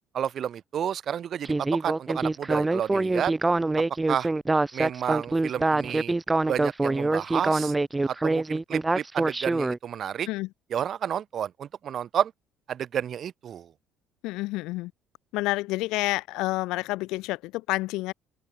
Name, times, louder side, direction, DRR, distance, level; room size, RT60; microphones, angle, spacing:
voice 1, 0.1-3.3 4.1-4.3 4.7-6.1 6.5-7.7 8.1-10.3 10.7-12.3 12.7-13.7, right 9 dB, 55° right, 3.9 m, -30 dB
Speech synthesizer, 1.4-9.8, right 2 dB, 20° right, 1.0 m, -25 dB
voice 2, 14.2-14.9 15.3-18.1, left 20 dB, 75° left, 1.9 m, -29 dB
hypercardioid pair, 65°, 0 cm